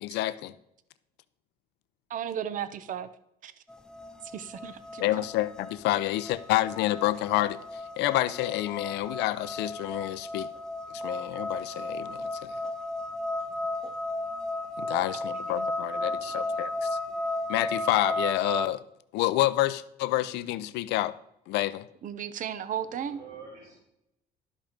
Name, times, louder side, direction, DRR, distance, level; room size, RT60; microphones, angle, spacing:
voice 1, 0.0-0.5 5.0-10.5 10.9-12.6 14.8-16.9 17.5-18.8 19.1-21.1 21.5-21.9, left 15 dB, 85° left, 15 dB, 0.6 m, -28 dB
voice 2, 2.1-3.1 3.4-3.5 4.3-5.0 22.0-23.2, right 9 dB, 50° right, 13 dB, 0.7 m, -34 dB
sound 1, 3.7-18.7, left 2 dB, 5° left, 0.6 m, -34 dB
voice 3, 15.9-17.1 22.8-23.8, right 4 dB, 85° right, -5 dB, 3.1 m, -50 dB
12.0 x 5.4 x 5.1 m, 0.81 s
cardioid pair, 110°, 17 cm